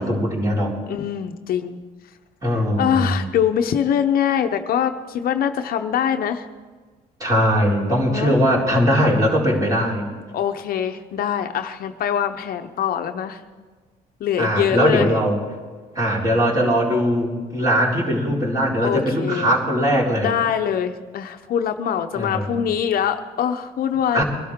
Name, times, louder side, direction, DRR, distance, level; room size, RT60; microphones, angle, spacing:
voice 1, 0.0-0.7 2.4-3.2 7.2-10.1 14.4-15.4 15.9-20.3 22.1-22.6 24.1-24.2, equal, 20° right, -4 dB, 4.4 m, -20 dB
voice 2, 0.9-1.8 2.8-6.5 8.1-8.4 10.3-13.4 14.2-15.1 18.8-19.5 20.2-24.2, left 9 dB, 60° left, 7 dB, 0.8 m, -23 dB
23.5 x 12.5 x 3.7 m, 1.4 s
cardioid pair, 110°, 17 cm